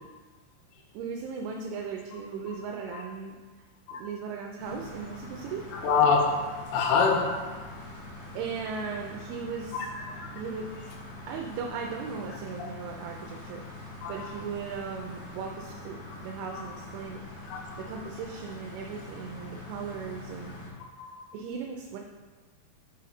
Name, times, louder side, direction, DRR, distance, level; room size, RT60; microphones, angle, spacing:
voice 1, 0.9-3.7 4.0-5.6 8.4-9.8 10.4-10.7 11.3-13.6 14.1-17.2 17.8-20.5 21.3-22.0, right 5 dB, 85° right, 1 dB, 3.0 m, -37 dB
sound 1, 4.6-20.7, left 2 dB, 45° left, 1.7 m, -44 dB
voice 2, 5.7-7.6 10.0-10.3 14.0-14.3 16.1-16.2 16.5-16.7 17.5-17.8, left 5 dB, 90° left, 1 dB, 3.4 m, -26 dB
8.5 x 5.1 x 4.2 m, 1.4 s
omnidirectional pair, 5.5 m